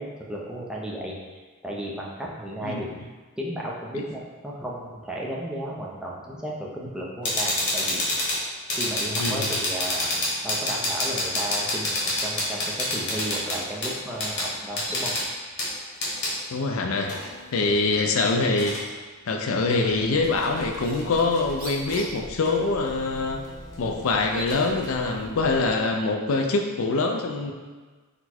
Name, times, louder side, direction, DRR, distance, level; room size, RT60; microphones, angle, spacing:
voice 1, 0.0-2.9 3.4-8.0 8.7-12.0 12.2-15.1, right 1 dB, 5° right, -3 dB, 0.5 m, -34 dB
sound 1, 7.3-16.3 17.0-18.8 19.7-19.8 20.2-21.5 21.9-22.0 22.4-25.3, left 1 dB, 55° left, 1.1 m, -29 dB
voice 2, 9.2-9.5 16.5-17.1 17.5-18.7 19.3-23.4 23.8-27.5, left 3 dB, 75° left, 3 dB, 0.4 m, -24 dB
Bird, 19.8-25.8, equal, 75° right, 0.9 m, -43 dB
4.1 x 2.1 x 4.3 m, 1.3 s
head